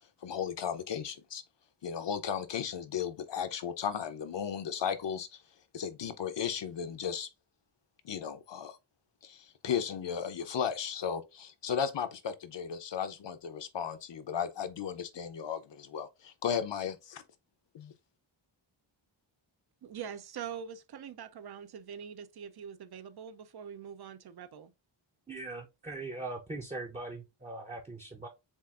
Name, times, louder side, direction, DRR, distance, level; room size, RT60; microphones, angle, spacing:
voice 1, 0.2-1.4 1.8-5.4 5.7-7.3 8.0-8.8 9.2-17.2 17.7-17.9, left 8 dB, 60° left, 0.7 m, -35 dB
voice 2, 19.8-24.7, right 8 dB, 50° right, 0.6 m, -44 dB
voice 3, 25.3-28.3, right 2 dB, 15° right, 0.7 m, -40 dB
7.2 x 2.5 x 2.4 m
wide cardioid pair, 150°, 49 cm